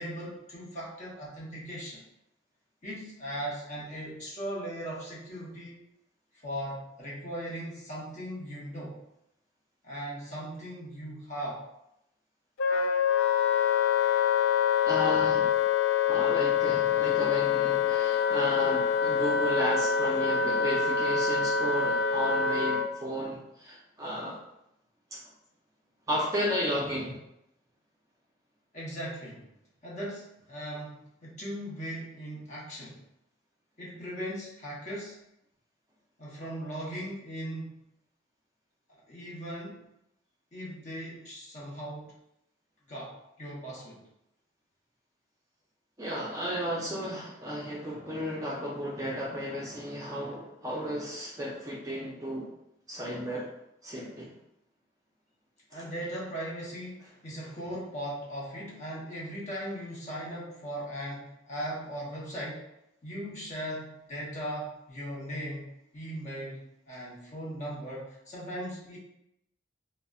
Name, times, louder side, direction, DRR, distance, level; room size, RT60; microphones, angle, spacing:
voice 1, 0.0-2.0 2.8-5.8 6.4-9.0 9.8-11.6 28.7-29.5 29.8-33.0 33.8-35.2 36.2-37.8 38.9-39.8 40.5-42.1 42.9-44.1 55.7-62.6 63.0-65.7 65.9-66.6 66.9-69.0, equal, 35° left, -6 dB, 0.8 m, -38 dB
Wind instrument woodwind instrument, 12.6-22.9, left 7 dB, 75° left, 0.3 m, -25 dB
voice 2, 14.8-15.5 16.1-24.4 25.1-25.2 26.1-27.2 46.0-52.5 52.9-53.5 53.8-54.3, equal, 15° right, -5 dB, 0.4 m, -33 dB
3.8 x 2.0 x 2.3 m, 0.81 s
head